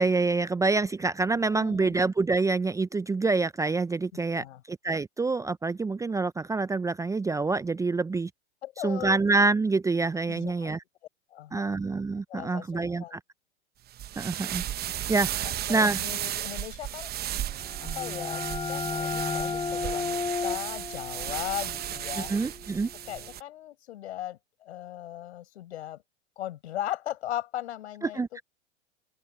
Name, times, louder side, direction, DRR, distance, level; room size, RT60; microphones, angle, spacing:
voice 1, 0.0-8.3 8.8-10.8 11.5-13.2 14.2-14.6 15.1-15.3 15.7-16.0 22.2-22.9 28.0-28.4, right 3 dB, 10° right, 0.7 m, -26 dB
voice 2, 1.5-2.0 4.3-4.6 8.6-9.2 10.3-10.8 11.3-11.7 12.3-13.2 15.4-17.1 17.8-22.3 23.1-26.0 26.4-28.4, left 12 dB, 70° left, 6.1 m, -38 dB
sound 1, 13.9-23.4, right 12 dB, 30° right, 1.0 m, -34 dB
sound 2, 17.5-23.0, left 5 dB, 15° left, 1.3 m, -34 dB
open air
hypercardioid pair, 105°, 34 cm